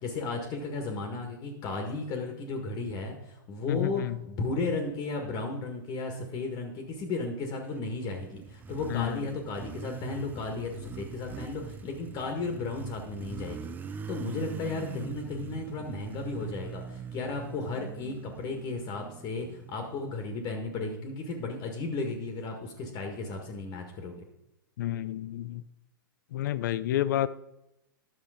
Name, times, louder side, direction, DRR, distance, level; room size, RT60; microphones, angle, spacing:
voice 1, 0.0-24.2, left 3 dB, 35° left, 3 dB, 1.7 m, -34 dB
voice 2, 3.7-4.2 8.9-9.2 24.8-25.6 26.3-27.3, left 13 dB, 60° left, 17 dB, 0.5 m, -30 dB
Motorcycle, 7.8-20.4, right 6 dB, 15° right, 0.4 m, -43 dB
11.0 x 6.8 x 5.0 m, 0.87 s
hypercardioid pair, 115°, 12 cm